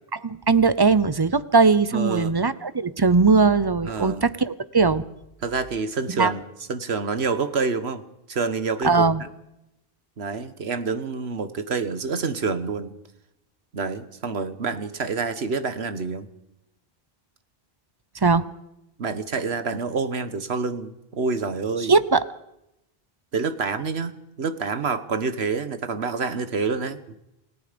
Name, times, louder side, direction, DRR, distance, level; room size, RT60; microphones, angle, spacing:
voice 1, 0.1-5.0 6.1-6.3 8.8-9.2 18.2-18.5 21.9-22.2, right 4 dB, 25° right, 15 dB, 0.7 m, -19 dB
voice 2, 1.9-2.3 3.9-4.2 5.4-6.4 6.7-8.0 8.3-9.3 10.2-12.9 13.7-16.3 19.0-21.9 23.3-27.0, right 4 dB, 80° right, 11 dB, 1.6 m, -27 dB
28.5 x 17.5 x 5.2 m, 0.85 s
omnidirectional pair, 1.1 m